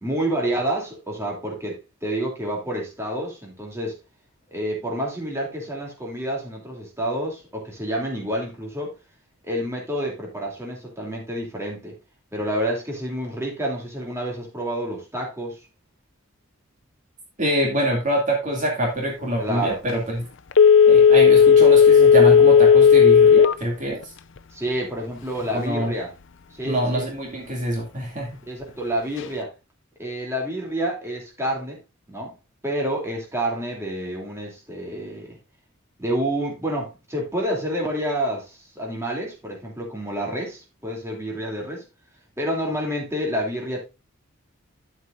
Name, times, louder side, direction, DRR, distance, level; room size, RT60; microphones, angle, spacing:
voice 1, 0.0-4.0 4.5-8.9 9.4-11.9 12.3-15.6 19.4-19.8 24.5-26.1 26.5-27.0 28.4-29.5 30.0-31.8 32.1-32.3 32.6-35.4 36.0-41.8 42.4-43.8, right 1 dB, 15° right, 2.9 m, -28 dB
voice 2, 17.4-20.3 20.9-24.1 25.5-25.9 26.6-28.4, right 1 dB, 40° right, 2.4 m, -25 dB
Telephone, 20.5-23.6 24.0-24.1, left 7 dB, 60° left, 0.6 m, -12 dB
11.0 x 8.0 x 2.5 m
head